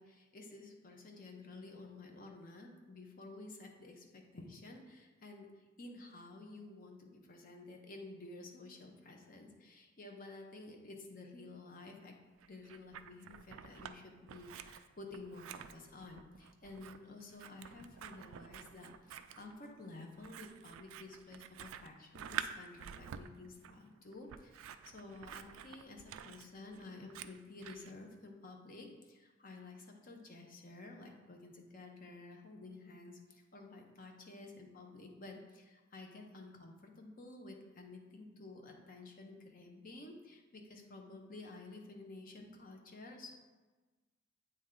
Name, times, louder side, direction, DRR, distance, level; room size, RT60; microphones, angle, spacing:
voice 1, 0.0-12.2 12.5-43.3, left 2 dB, 45° left, 2 dB, 0.8 m, -52 dB
Scissors, 12.4-14.0 14.3-27.9, right 9 dB, 80° right, 0.3 m, -48 dB
8.2 x 3.2 x 3.7 m, 1.3 s
head